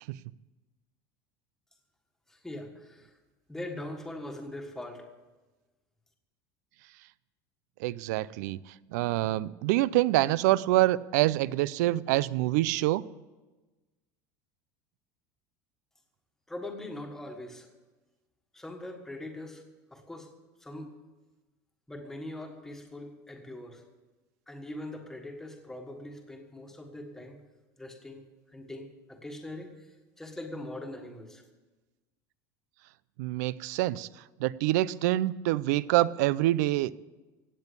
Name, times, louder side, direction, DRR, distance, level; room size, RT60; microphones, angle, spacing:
voice 1, 2.3-3.2 3.5-5.1 16.5-17.7 18.5-19.6 19.9-20.3 20.6-21.0 21.9-23.8 24.5-27.4 27.8-31.4, left 1 dB, 5° left, 3 dB, 1.6 m, -42 dB
voice 2, 7.8-8.6 8.9-13.0 33.2-34.1 34.4-37.0, right 16 dB, 75° right, 20 dB, 0.5 m, -26 dB
16.5 x 8.9 x 8.3 m, 1.2 s
cardioid pair, 175°, 9 cm